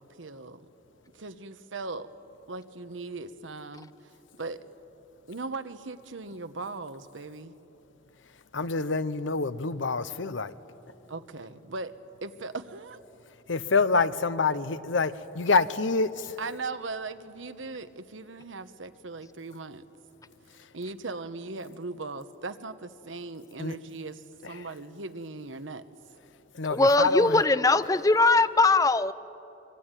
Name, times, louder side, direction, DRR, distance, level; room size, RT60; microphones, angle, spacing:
voice 1, 0.2-0.6 1.1-2.1 2.5-3.9 4.4-4.6 5.3-7.5 11.1-11.9 12.2-13.0 16.4-19.8 20.7-25.8, right 3 dB, 85° right, 1.1 m, -38 dB
voice 2, 8.5-10.5 13.5-16.2 23.6-23.8 26.6-27.4, left 4 dB, 80° left, 0.9 m, -26 dB
voice 3, 26.7-29.1, left 3 dB, 20° left, 0.6 m, -21 dB
24.5 x 24.5 x 9.1 m
head